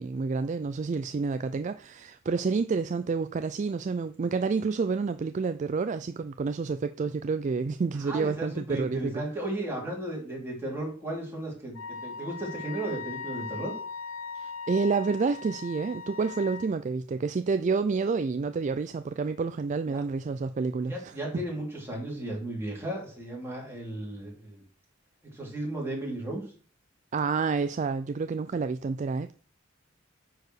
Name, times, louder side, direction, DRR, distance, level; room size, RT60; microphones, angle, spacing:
voice 1, 0.0-9.2 14.4-21.1 27.1-29.3, right 4 dB, 35° right, 0.3 m, -29 dB
voice 2, 8.0-13.7 19.9-20.0 20.8-24.6 25.3-26.4, right 1 dB, 10° right, 3.4 m, -35 dB
Wind instrument woodwind instrument, 11.7-16.7, left 5 dB, 85° left, 0.8 m, -39 dB
9.7 x 4.7 x 6.4 m
head